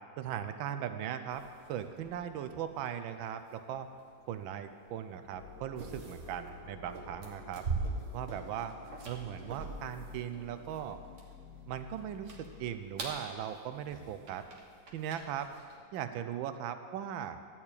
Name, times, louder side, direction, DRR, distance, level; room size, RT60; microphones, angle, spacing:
voice 1, 0.2-3.9 4.3-7.6 8.1-8.7 9.0-11.0 11.7-14.4 14.9-15.5 15.9-17.4, right 9 dB, 85° right, 9 dB, 1.4 m, -39 dB
sound 1, 1.3-15.8, right 3 dB, 45° right, 1.4 m, -44 dB
sound 2, 5.3-12.8, left 5 dB, 80° left, 1.7 m, -52 dB
12.5 x 4.4 x 8.3 m, 2.1 s
omnidirectional pair, 2.1 m